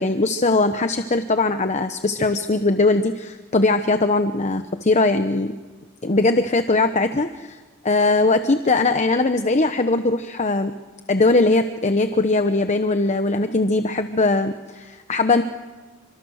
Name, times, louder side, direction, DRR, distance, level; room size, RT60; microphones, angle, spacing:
voice 1, 0.0-5.5 6.0-7.6 7.8-10.7 11.1-15.4, left 3 dB, 35° left, 8 dB, 0.9 m, -20 dB
29.5 x 25.0 x 6.5 m, 1.3 s
head